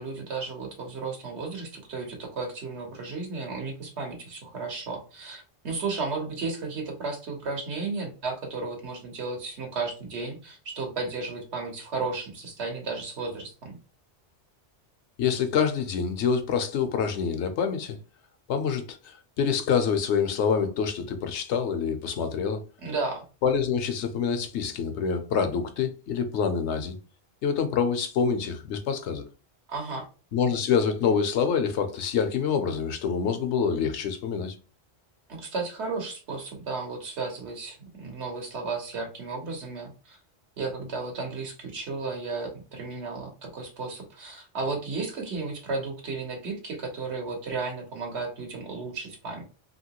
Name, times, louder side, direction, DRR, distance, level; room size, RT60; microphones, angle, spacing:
voice 1, 0.0-13.8 22.8-23.2 29.7-30.1 35.3-40.2 40.6-49.4, right 4 dB, 85° right, 1.3 m, -34 dB
voice 2, 15.2-18.0 18.5-22.6 23.4-27.0 27.4-29.2 30.3-34.6, left 6 dB, 90° left, 0.9 m, -26 dB
3.0 x 2.8 x 2.9 m
omnidirectional pair, 1.1 m